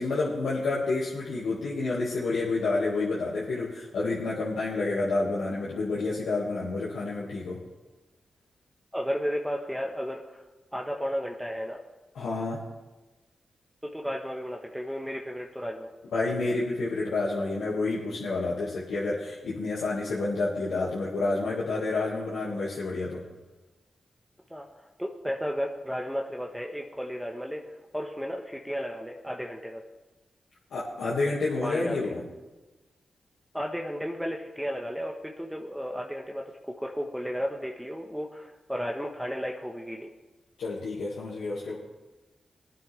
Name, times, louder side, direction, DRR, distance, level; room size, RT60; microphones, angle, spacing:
voice 1, 0.0-7.6 12.1-12.6 16.1-23.2 30.7-32.2 40.6-41.7, left 3 dB, 85° left, -7 dB, 2.2 m, -29 dB
voice 2, 8.9-10.4 10.7-11.8 13.8-15.9 24.5-24.7 25.0-29.8 31.6-32.0 33.5-40.1, equal, 5° right, 1 dB, 1.4 m, -33 dB
20.0 x 9.3 x 3.5 m, 1.2 s
supercardioid pair, 45°, 0 cm